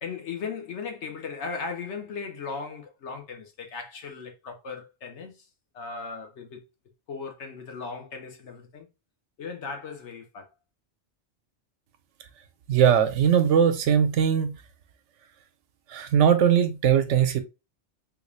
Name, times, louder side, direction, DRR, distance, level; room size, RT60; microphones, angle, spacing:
voice 1, 0.0-5.5 5.7-6.6 7.1-8.9 9.4-10.5, left 5 dB, 80° left, 1.2 m, -37 dB
voice 2, 12.7-14.5 15.9-17.4, right 8 dB, 90° right, 1.0 m, -20 dB
3.5 x 2.4 x 3.1 m
omnidirectional pair, 1.2 m